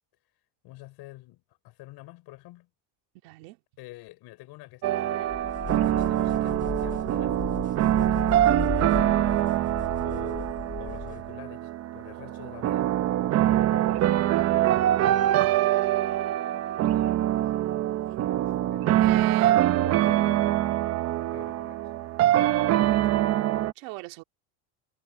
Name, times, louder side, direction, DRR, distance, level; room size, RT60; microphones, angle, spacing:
voice 1, 0.6-2.7 3.8-5.4 6.0-7.6 8.0-9.4 10.0-12.9 13.6-14.4 14.9-15.3 18.7-19.3 19.8-20.5 21.3-21.9, left 19 dB, 55° left, 6.0 m, -47 dB
voice 2, 3.2-3.6 17.4-17.7 19.0-19.9 23.8-24.2, right 23 dB, 80° right, 2.3 m, -38 dB
sound 1, 4.8-23.7, right 13 dB, 35° right, 0.7 m, -24 dB
sound 2, 5.3-11.3, left 5 dB, 15° left, 1.2 m, -36 dB
cardioid pair, 170°, 47 cm